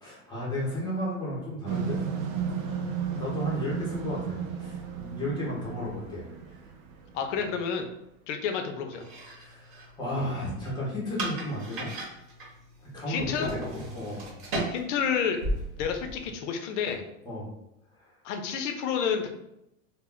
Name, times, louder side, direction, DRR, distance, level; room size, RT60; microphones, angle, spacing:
voice 1, 0.0-2.0 3.1-6.3 9.3-11.9 12.8-14.3 17.2-17.5 18.0-18.1, left 1 dB, 10° left, -6 dB, 0.5 m, -33 dB
sound 1, 1.7-6.9, right 7 dB, 80° right, 0.6 m, -33 dB
voice 2, 7.1-7.9 8.3-9.0 13.1-13.5 14.7-15.4 15.8-17.0 18.2-19.3, left 7 dB, 65° left, 5 dB, 0.5 m, -29 dB
sound 2, 8.9-16.3, right 1 dB, 45° right, 0.9 m, -37 dB
2.1 x 2.1 x 3.6 m, 0.84 s
supercardioid pair, 155°, 40 cm